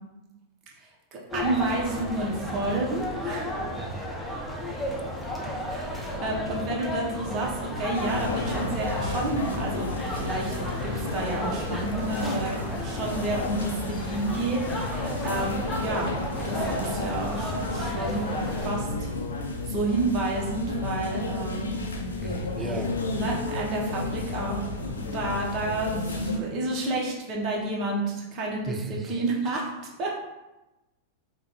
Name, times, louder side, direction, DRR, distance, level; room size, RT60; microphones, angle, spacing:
voice 1, 0.8-3.5 5.7-10.5 10.8-16.1 16.4-19.1 19.6-21.7 23.1-28.7 29.1-29.6 30.0-30.3, right 2 dB, 40° right, -2 dB, 1.0 m, -30 dB
sound 1, 1.3-18.7, equal, 10° left, 0.7 m, -33 dB
sound 2, 7.9-26.4, left 3 dB, 90° left, 0.5 m, -32 dB
voice 2, 22.2-22.9 28.7-29.2, right 3 dB, 20° right, 5 dB, 0.4 m, -35 dB
3.4 x 2.3 x 3.8 m, 1.0 s
hypercardioid pair, 100°, 0 cm